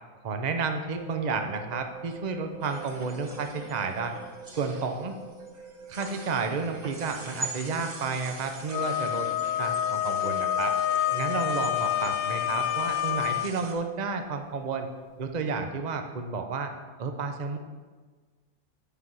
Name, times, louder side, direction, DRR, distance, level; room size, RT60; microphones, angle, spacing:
voice 1, 0.2-4.2 4.5-5.2 5.9-9.3 9.6-10.7 11.1-14.9 15.2-16.7 17.0-17.6, right 4 dB, 90° right, 6 dB, 0.3 m, -31 dB
sound 1, 0.9-15.3, right 5 dB, 55° right, 4.2 m, -48 dB
sound 2, 2.6-13.7, right 2 dB, 35° right, 1.1 m, -43 dB
Wind instrument woodwind instrument, 8.7-13.5, left 11 dB, 75° left, 1.2 m, -28 dB
9.0 x 6.1 x 7.6 m, 1.4 s
omnidirectional pair, 2.1 m